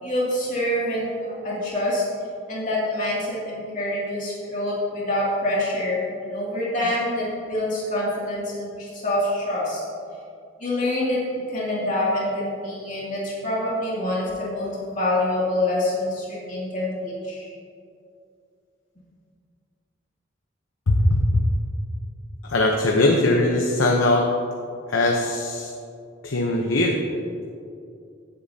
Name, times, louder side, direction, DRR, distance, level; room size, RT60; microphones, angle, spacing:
voice 1, 0.0-2.0 2.5-9.8 10.6-17.5, left 1 dB, 40° left, -6 dB, 2.5 m, -26 dB
voice 2, 20.9-21.4 22.4-24.3 24.9-25.7 26.2-27.0, left 2 dB, 90° left, 1 dB, 0.9 m, -20 dB
16.5 x 8.6 x 2.8 m, 2.4 s
head